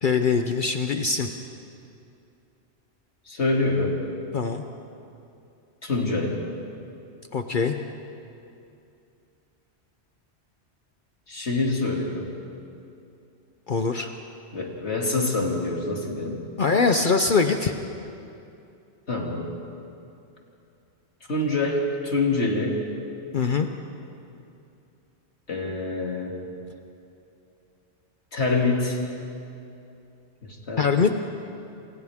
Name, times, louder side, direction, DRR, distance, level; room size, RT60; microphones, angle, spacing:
voice 1, 0.0-1.3 4.3-4.6 7.3-7.7 13.7-14.1 16.6-17.7 23.3-23.7 30.8-31.1, left 5 dB, 50° left, 6 dB, 0.9 m, -22 dB
voice 2, 3.3-4.0 5.8-6.4 11.3-12.3 14.5-16.4 19.1-19.5 21.3-22.8 25.5-26.3 28.3-29.0 30.4-30.9, left 2 dB, 85° left, -1 dB, 3.0 m, -26 dB
29.0 x 28.0 x 3.6 m, 2.7 s
omnidirectional pair, 1.1 m